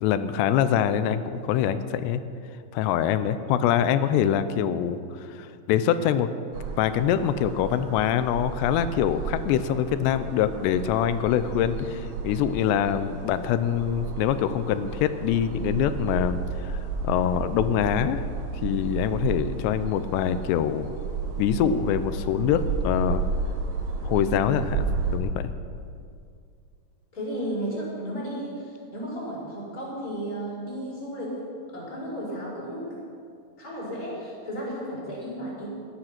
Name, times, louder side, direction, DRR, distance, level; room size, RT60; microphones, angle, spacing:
voice 1, 0.0-2.2 2.7-6.3 6.8-18.2 18.6-20.9 21.4-23.2 24.0-24.9 25.1-25.5, left 9 dB, 85° left, 12 dB, 2.8 m, -24 dB
sound 1, 6.5-25.2, right 4 dB, 70° right, 3.5 m, -32 dB
voice 2, 27.1-31.3 31.7-33.0 33.6-35.7, equal, 20° left, -6 dB, 5.2 m, -33 dB
17.0 x 11.5 x 5.9 m, 2.3 s
omnidirectional pair, 5.0 m